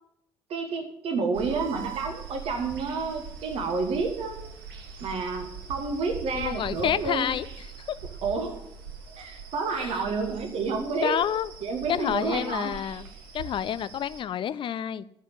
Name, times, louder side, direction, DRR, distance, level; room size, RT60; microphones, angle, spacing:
voice 1, 0.5-4.4 5.0-7.2 8.2-8.6 9.2-11.2 11.6-12.7, right 4 dB, 50° right, 5 dB, 1.4 m, -29 dB
sound 1, 1.3-14.2, right 5 dB, 75° right, 1.3 m, -42 dB
voice 2, 6.3-7.5 7.9-8.0 9.7-10.0 11.0-11.5 11.9-13.1 13.3-15.0, left 9 dB, 40° left, 16 dB, 0.5 m, -29 dB
12.0 x 5.3 x 8.9 m, 0.78 s
figure-of-eight pair, 50°, 13 cm